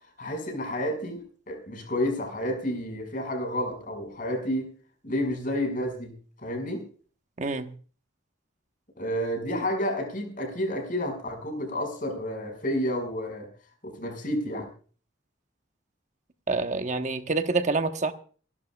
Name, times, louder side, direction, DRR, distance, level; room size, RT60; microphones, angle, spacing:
voice 1, 0.2-1.2 1.5-4.7 5.0-6.2 6.4-6.8 9.0-13.5 13.8-14.7, left 1 dB, 45° left, 5.4 m, -30 dB
voice 2, 7.4-7.7 16.5-18.1, right 3 dB, 40° right, 1.0 m, -27 dB
27.5 x 12.0 x 2.3 m
head